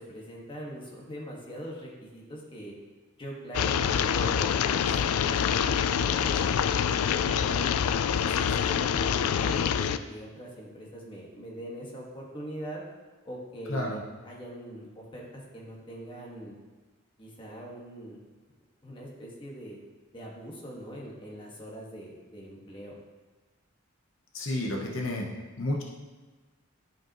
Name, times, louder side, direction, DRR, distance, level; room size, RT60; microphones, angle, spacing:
voice 1, 0.0-2.7 3.2-7.7 8.1-12.8 13.2-14.0 14.2-16.5 17.2-18.2 18.8-19.8 20.1-23.0, right 1 dB, 20° left, -3 dB, 1.4 m, -42 dB
sound 1, 3.5-10.0, left 8 dB, 75° left, 0.3 m, -26 dB
voice 2, 24.3-25.3 25.6-25.8, left 1 dB, 60° left, 0 dB, 0.9 m, -30 dB
12.0 x 5.2 x 2.9 m, 1.3 s
head